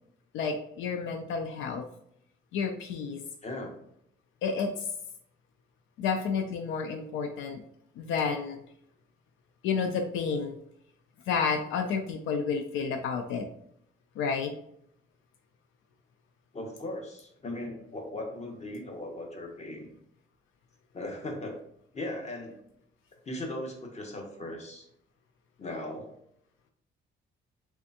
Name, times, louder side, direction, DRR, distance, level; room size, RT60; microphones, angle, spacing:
voice 1, 0.3-1.9 2.5-3.2 4.4-4.9 6.0-7.6 8.0-8.6 9.6-10.6 11.3-13.5 14.2-14.5, left 5 dB, 85° left, 6 dB, 0.4 m, -30 dB
voice 2, 3.4-3.7 16.5-19.9 20.9-21.6 21.9-22.6 23.2-24.9 25.6-26.1, left 1 dB, 35° left, 2 dB, 1.0 m, -38 dB
3.4 x 3.4 x 2.7 m, 0.71 s
cardioid pair, 90°, 20 cm